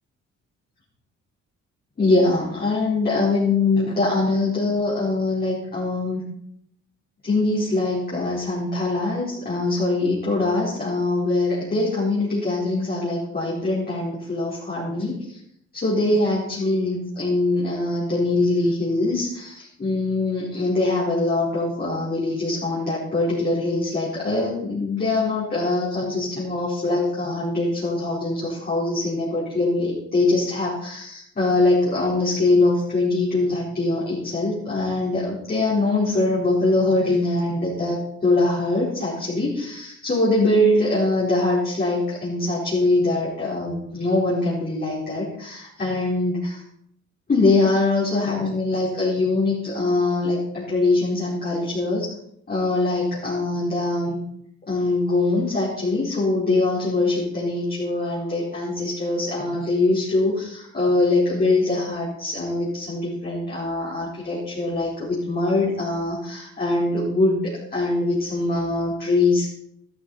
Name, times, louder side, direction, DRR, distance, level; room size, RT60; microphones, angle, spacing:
voice 1, 2.0-6.2 7.2-15.4 15.7-46.6 47.3-52.1 52.5-54.2 54.7-69.5, left 2 dB, 30° left, -8 dB, 4.6 m, -23 dB
13.0 x 12.5 x 4.3 m, 0.72 s
cardioid pair, 90°, 30 cm